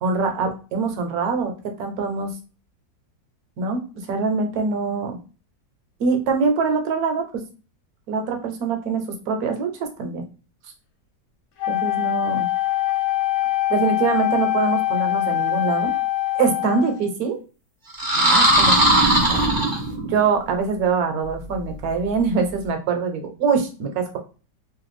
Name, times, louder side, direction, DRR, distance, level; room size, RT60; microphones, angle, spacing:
voice 1, 0.0-2.3 3.6-3.8 4.1-5.2 6.0-7.4 8.1-10.2 11.7-12.4 13.7-15.9 16.4-17.4 18.1-18.7 19.3-19.4 20.0-24.2, right 5 dB, 65° right, 4 dB, 1.1 m, -24 dB
Wind instrument woodwind instrument, 11.6-17.1, left 15 dB, 70° left, 1.0 m, -23 dB
sound 1, 17.9-20.2, right 1 dB, 30° right, 0.4 m, -18 dB
3.1 x 2.2 x 3.2 m, 0.35 s
omnidirectional pair, 1.8 m